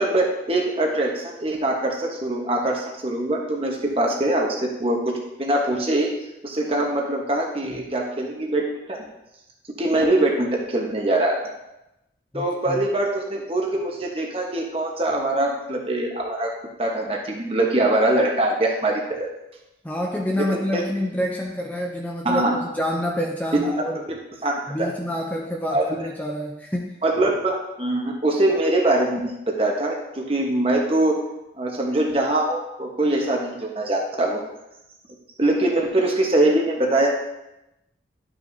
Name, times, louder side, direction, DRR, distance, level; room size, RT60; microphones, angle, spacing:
voice 1, 0.0-6.1 6.4-9.0 9.7-11.4 12.3-16.5 16.8-19.3 20.4-20.8 22.2-22.6 23.5-23.7 24.1-24.9 25.7-26.0 27.0-31.2 31.6-34.4 35.4-37.1, right 1 dB, 30° right, 0 dB, 1.2 m, -23 dB
voice 2, 12.3-12.8 19.8-24.0 24.7-26.9, left 1 dB, 10° left, 0 dB, 0.5 m, -28 dB
11.5 x 5.8 x 2.7 m, 0.92 s
head